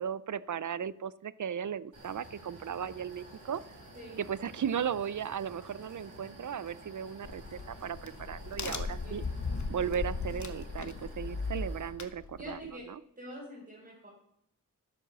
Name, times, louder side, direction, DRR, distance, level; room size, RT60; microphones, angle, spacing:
voice 1, 0.0-3.6 4.2-9.2 9.7-13.0, right 8 dB, 70° right, 18 dB, 0.6 m, -36 dB
sound 1, 1.9-11.9, right 1 dB, 85° right, 5.2 m, -51 dB
Crack, 7.2-12.7, left 4 dB, 65° left, 1.3 m, -38 dB
voice 2, 12.4-12.9 13.2-14.1, equal, 30° right, -5 dB, 4.5 m, -45 dB
12.0 x 7.7 x 6.7 m, 0.75 s
wide cardioid pair, 80°, 32 cm